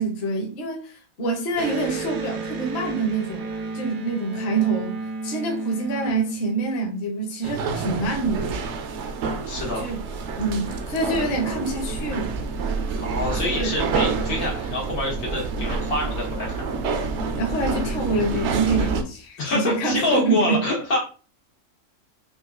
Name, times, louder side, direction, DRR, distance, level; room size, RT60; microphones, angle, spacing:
voice 1, 0.0-3.5 3.7-8.6 9.8-10.0 10.4-12.4 13.4-13.7 17.4-20.6, right 3 dB, 50° left, 1 dB, 1.0 m, -26 dB
Electric guitar, 1.5-7.0, right 3 dB, 80° right, 1.2 m, -32 dB
sound 1, 7.4-19.0, right 4 dB, 65° right, 0.7 m, -28 dB
voice 2, 9.5-9.9 13.0-16.7 19.4-21.0, left 2 dB, 85° left, -2 dB, 1.9 m, -26 dB
5.3 x 2.3 x 2.4 m, 0.36 s
omnidirectional pair, 1.5 m